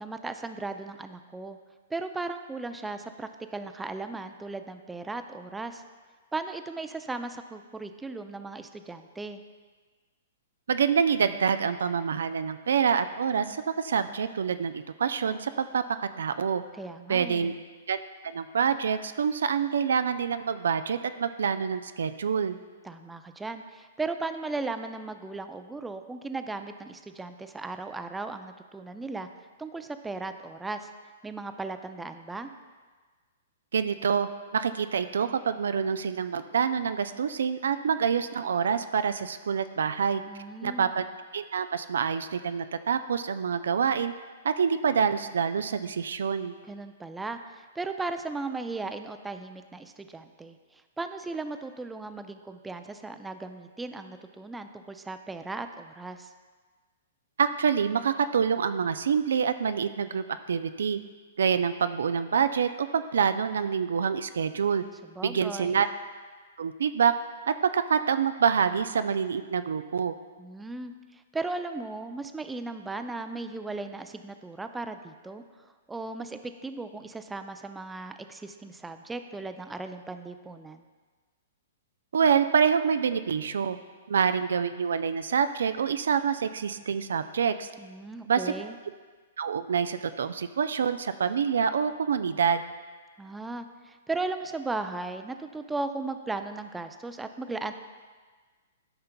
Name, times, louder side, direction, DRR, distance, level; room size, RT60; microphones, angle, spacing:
voice 1, 0.0-1.6 1.9-5.8 6.3-9.4 16.7-17.6 22.8-29.3 29.6-30.9 31.2-32.5 40.3-40.9 46.7-56.3 65.0-65.8 70.4-80.8 87.8-88.8 93.2-97.7, right 3 dB, 10° right, 8 dB, 0.4 m, -37 dB
voice 2, 10.7-15.8 16.2-16.6 17.1-17.5 17.9-18.0 18.2-22.6 33.7-40.2 40.6-41.0 41.3-44.1 44.4-46.5 57.4-61.0 61.4-64.8 65.2-65.9 66.6-67.1 67.5-70.1 82.1-83.8 84.1-87.7 88.3-88.5 89.4-92.6, right 6 dB, 75° right, 10 dB, 0.3 m, -26 dB
12.5 x 5.6 x 2.2 m, 1.4 s
hypercardioid pair, 125°, 0 cm